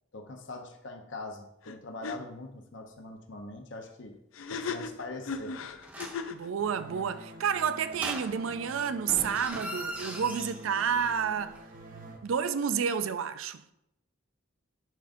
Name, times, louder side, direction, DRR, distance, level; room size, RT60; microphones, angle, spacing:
voice 1, 0.1-4.2 4.5-5.6, left 2 dB, 65° left, 0.8 m, -42 dB
sound 1, 1.6-1.8 2.0-2.2 4.3-6.5, left 5 dB, 85° left, 0.5 m, -36 dB
sound 2, 5.8-6.3 7.9-8.7 9.0-11.3 11.6-11.7, right 1 dB, 10° right, 0.5 m, -40 dB
voice 2, 6.3-11.6 12.2-13.7, right 7 dB, 85° right, 0.4 m, -30 dB
sound 3, 6.6-12.2, right 1 dB, 40° right, 0.8 m, -47 dB
11.0 x 5.0 x 2.6 m
head